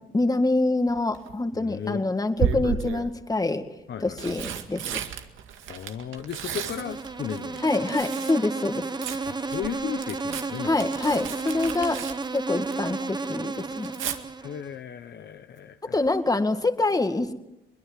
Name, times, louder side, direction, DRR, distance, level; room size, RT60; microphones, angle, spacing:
voice 1, 0.1-3.6 4.0-4.8 7.6-8.8 10.6-12.0 12.3-13.9 15.9-17.3, left 2 dB, 20° left, 7 dB, 2.1 m, -25 dB
Tearing, 0.9-1.3 2.4-3.1 3.9-8.4 8.7-13.0 13.3-14.2 16.0-16.3 16.6-16.7, right 7 dB, 80° right, 2.0 m, -33 dB
voice 2, 1.5-2.1 3.9-4.2 5.7-7.7 9.3-11.3 14.4-16.0, left 9 dB, 60° left, 9 dB, 1.1 m, -35 dB
Insect, 6.5-14.7, right 3 dB, 20° right, 1.1 m, -33 dB
23.0 x 21.5 x 7.6 m, 0.90 s
cardioid pair, 90°, 20 cm